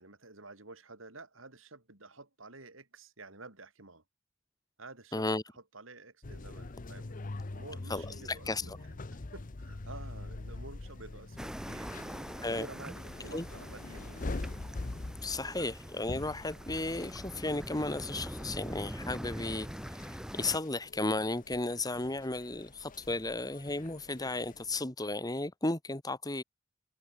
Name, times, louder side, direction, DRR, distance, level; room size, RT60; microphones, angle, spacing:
voice 1, 0.0-4.0 4.8-5.3 5.5-9.0 9.3-14.6 15.3-15.7, right 3 dB, 70° right, 4.6 m, -51 dB
voice 2, 5.1-5.4 7.9-8.7 12.4-12.7 13.3-13.5 15.2-19.7 20.3-26.4, left 2 dB, 20° left, 1.7 m, -34 dB
sound 1, 6.2-24.8, left 2 dB, 40° left, 0.8 m, -45 dB
sound 2, 11.4-20.6, equal, 5° right, 1.6 m, -43 dB
open air
head